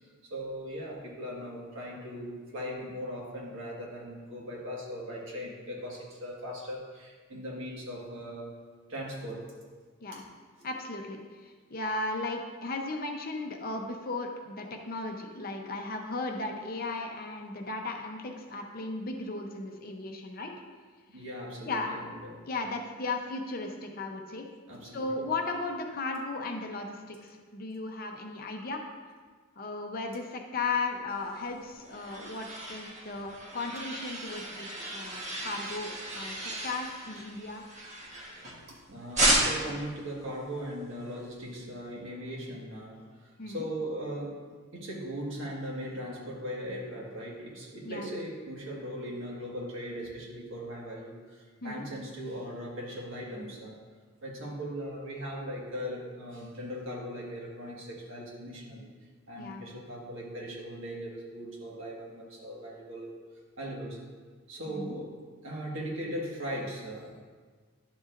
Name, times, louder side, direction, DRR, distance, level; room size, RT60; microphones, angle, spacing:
voice 1, 0.3-8.5 8.9-9.5 10.1-10.2 10.6-10.7 21.1-22.4 24.7-25.3 38.7-44.4 44.7-53.8 54.2-58.9 59.3-63.1 63.6-64.0 64.5-65.1 65.4-67.2, equal, 65° right, -3 dB, 1.7 m, -39 dB
voice 2, 10.6-20.5 21.7-21.9 22.5-24.5 24.9-28.8 29.6-36.4 36.6-37.6 43.4-43.7 47.8-48.1 51.6-51.9 59.4-59.6 64.7-65.0, left 3 dB, 45° left, 3 dB, 0.7 m, -36 dB
sound 1, 31.4-38.7 39.1-39.8, right 1 dB, 35° right, 1.3 m, -33 dB
11.0 x 6.9 x 2.6 m, 1.5 s
head